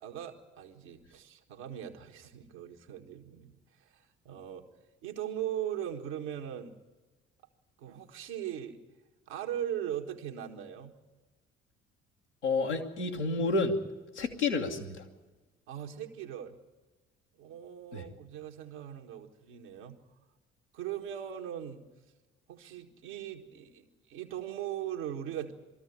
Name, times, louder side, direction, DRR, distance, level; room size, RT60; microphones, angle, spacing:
voice 1, 0.0-4.6 5.0-6.7 7.8-8.8 9.3-10.9 15.7-16.6 17.4-20.0 20.7-21.8 22.5-25.5, right 10 dB, 70° right, 2 dB, 1.6 m, -39 dB
voice 2, 12.4-13.8 14.1-15.0 17.9-18.0, left 3 dB, 85° left, 0 dB, 1.5 m, -30 dB
20.0 x 14.0 x 9.5 m, 1.2 s
figure-of-eight pair, 45°, 34 cm